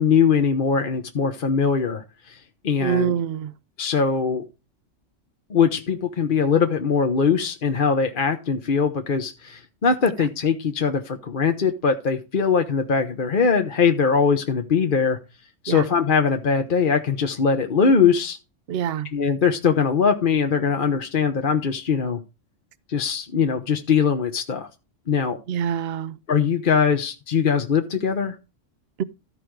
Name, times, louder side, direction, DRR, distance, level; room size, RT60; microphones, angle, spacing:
voice 1, 0.0-2.4 2.6-3.1 3.8-4.4 5.5-15.2 15.6-18.4 19.1-22.2 22.9-24.7 25.1-25.4 26.3-28.4, left 6 dB, 45° left, 1.1 m, -21 dB
voice 2, 2.8-3.5 15.7-15.8 18.7-19.1 25.5-26.1 29.0-29.1, right 8 dB, 60° right, 0.8 m, -25 dB
14.0 x 5.1 x 4.7 m
omnidirectional pair, 1.3 m